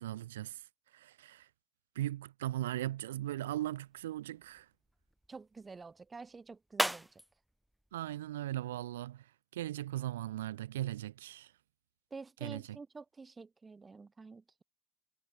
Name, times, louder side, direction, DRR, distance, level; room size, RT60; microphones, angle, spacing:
voice 1, 0.0-1.5 2.0-4.7 7.9-11.5 12.4-12.8, right 14 dB, 80° right, 0.4 m, -38 dB
sound 1, 3.1-9.1, right 1 dB, 5° right, 0.3 m, -42 dB
voice 2, 5.3-7.1 12.1-14.6, right 4 dB, 20° right, 3.1 m, -49 dB
hypercardioid pair, 85°, 0 cm